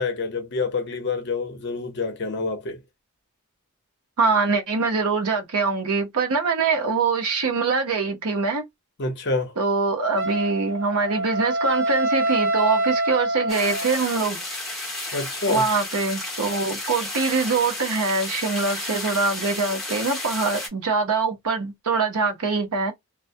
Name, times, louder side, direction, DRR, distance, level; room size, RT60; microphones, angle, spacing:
voice 1, 0.0-2.8 9.0-9.5 15.1-15.6, left 3 dB, 50° left, 0.7 m, -27 dB
voice 2, 4.2-8.6 9.6-14.4 15.5-22.9, right 4 dB, 90° right, 0.8 m, -23 dB
Wind instrument woodwind instrument, 10.2-14.1, right 1 dB, 55° right, 0.5 m, -25 dB
sound 1, 13.5-20.7, left 2 dB, ahead, 0.7 m, -32 dB
2.2 x 2.1 x 2.6 m
head